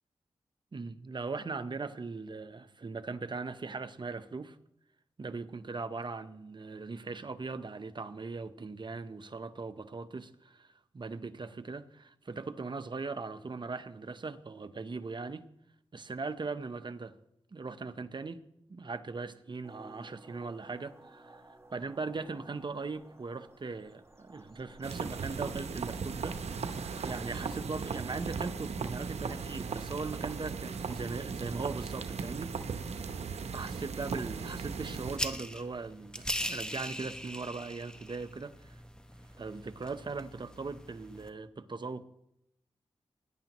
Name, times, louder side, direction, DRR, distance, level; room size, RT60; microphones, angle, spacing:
voice 1, 0.7-4.6 5.2-15.5 15.9-17.1 17.5-18.4 18.7-32.6 33.0-33.1 33.5-38.7 39.4-42.0, right 4 dB, 45° right, 0.9 m, -39 dB
sound 1, 19.6-29.8, right 2 dB, 25° right, 1.5 m, -56 dB
sound 2, 24.8-35.2, right 5 dB, 80° right, 0.8 m, -37 dB
sound 3, 35.1-41.3, equal, 5° left, 1.1 m, -40 dB
20.5 x 10.5 x 3.0 m
cardioid pair, 55°, 11 cm